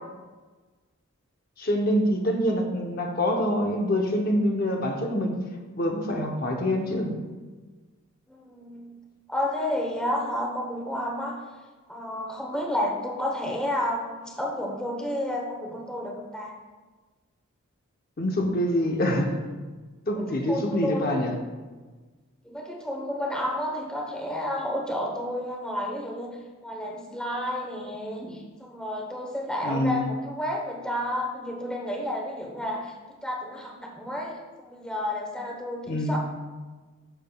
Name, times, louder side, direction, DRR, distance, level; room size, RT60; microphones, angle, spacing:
voice 1, 1.6-5.4 5.8-7.1 18.2-19.3 20.1-21.3 29.6-30.1 35.9-36.2, left 1 dB, 40° left, 2 dB, 0.7 m, -25 dB
voice 2, 8.3-8.9 9.3-11.4 11.9-16.5 19.1-19.2 20.1-21.2 22.4-26.4 26.6-36.2, left 1 dB, 5° left, -1 dB, 0.9 m, -31 dB
12.0 x 6.8 x 2.2 m, 1.3 s
head